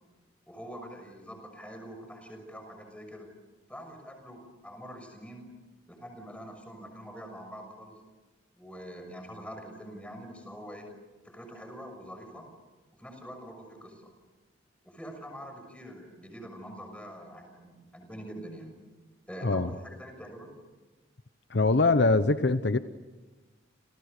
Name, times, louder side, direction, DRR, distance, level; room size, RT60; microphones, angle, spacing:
voice 1, 0.5-3.3 3.7-5.5 5.9-8.0 8.5-10.9 11.2-12.5 13.0-14.1 14.8-18.7 19.3-20.5, equal, 5° left, 5 dB, 6.3 m, -45 dB
voice 2, 21.5-22.8, left 3 dB, 60° left, 11 dB, 0.9 m, -23 dB
29.5 x 29.0 x 6.7 m, 1.2 s
head